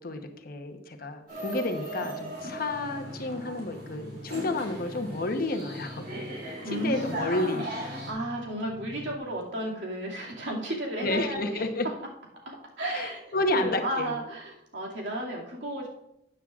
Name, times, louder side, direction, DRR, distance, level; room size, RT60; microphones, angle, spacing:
voice 1, 0.0-6.0 6.7-7.6 11.0-11.9 12.9-14.2, left 2 dB, 55° left, 6 dB, 1.0 m, -31 dB
sound 1, 1.3-8.1, right 1 dB, 65° right, 3.4 m, -38 dB
sound 2, 2.7-9.2, left 1 dB, 15° left, 0.8 m, -46 dB
voice 2, 6.6-11.6 12.5-15.9, right 1 dB, 85° right, -3 dB, 2.3 m, -34 dB
13.0 x 9.0 x 2.4 m, 0.80 s
head